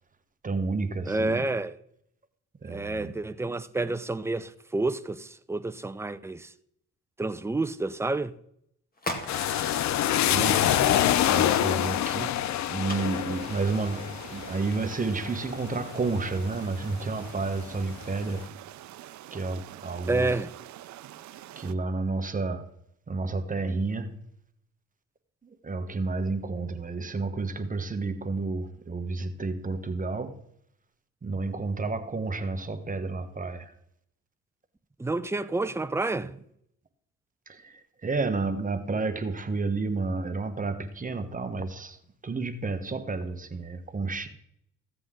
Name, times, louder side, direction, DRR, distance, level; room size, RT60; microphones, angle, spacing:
voice 1, 0.4-1.5 2.6-3.1 10.2-12.4 12.7-18.5 19.3-20.3 21.6-22.7 23.1-24.2 25.4-30.3 31.2-33.7 37.5-44.3, right 3 dB, 25° right, 1.2 m, -31 dB
voice 2, 1.1-1.8 2.6-6.5 7.2-8.3 20.1-20.5 35.0-36.4, right 2 dB, 10° right, 0.5 m, -29 dB
sound 1, 9.0-14.2, left 1 dB, 30° left, 2.2 m, -42 dB
sound 2, 9.3-16.9 17.4-18.2, left 11 dB, 65° left, 0.6 m, -26 dB
sound 3, 12.8-21.7, right 13 dB, 70° right, 0.6 m, -46 dB
15.0 x 7.7 x 3.8 m
cardioid pair, 90°, 30 cm